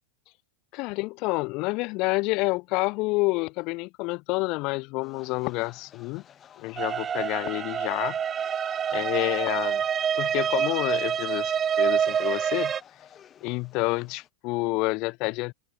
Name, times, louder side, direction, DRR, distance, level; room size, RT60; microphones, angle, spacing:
voice 1, 0.7-6.2 6.6-8.2 8.9-9.8 10.2-12.7 13.4-15.5, left 25 dB, 40° left, 0.9 m, -28 dB
sound 1, 5.0-14.3, left 9 dB, 20° left, 5.5 m, -53 dB
sound 2, 6.8-12.8, right 8 dB, 15° right, 0.7 m, -27 dB
open air
supercardioid pair, 160°, 0 cm